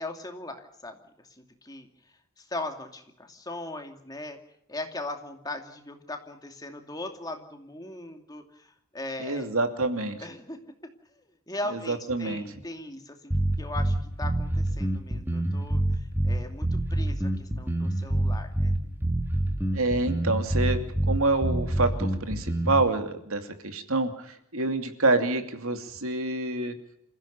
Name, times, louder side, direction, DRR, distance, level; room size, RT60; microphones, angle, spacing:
voice 1, 0.0-1.9 2.4-4.4 4.7-9.6 10.2-10.6 11.5-18.7, left 2 dB, 15° left, 5 dB, 2.6 m, -39 dB
voice 2, 9.2-10.2 11.7-12.4 19.7-26.8, right 2 dB, 70° right, 7 dB, 2.7 m, -27 dB
sound 1, 13.3-22.9, right 1 dB, 10° right, 2.6 m, -26 dB
28.0 x 16.0 x 6.9 m, 0.76 s
head